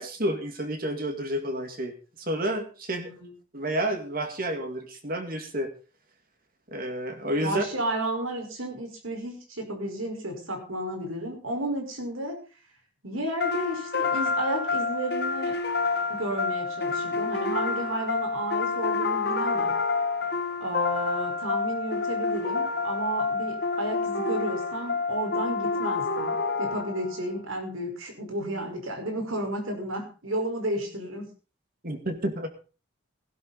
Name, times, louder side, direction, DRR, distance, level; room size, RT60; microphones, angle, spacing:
voice 1, 0.0-3.1 3.5-5.7 6.7-7.6 31.8-32.5, right 1 dB, 45° right, 6 dB, 2.2 m, -30 dB
voice 2, 7.4-12.4 13.0-15.5 16.1-19.8 20.6-31.3, right 1 dB, 85° right, 4 dB, 5.0 m, -32 dB
sound 1, 13.4-27.3, left 4 dB, 50° left, 2.1 m, -28 dB
16.5 x 12.0 x 4.1 m, 0.35 s
head